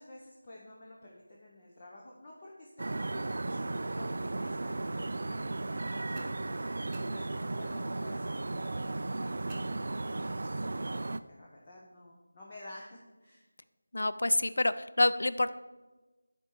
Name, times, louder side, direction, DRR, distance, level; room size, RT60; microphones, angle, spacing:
voice 1, 0.0-13.5, left 1 dB, 25° left, -4 dB, 1.0 m, -51 dB
sound 1, 2.8-11.2, right 2 dB, 55° right, 0.3 m, -35 dB
sound 2, 6.2-7.8 9.5-10.5, right 2 dB, 10° right, 1.0 m, -53 dB
voice 2, 13.9-15.5, left 2 dB, 65° left, 13 dB, 0.4 m, -27 dB
11.0 x 4.4 x 4.7 m, 1.2 s
figure-of-eight pair, 165°, 0 cm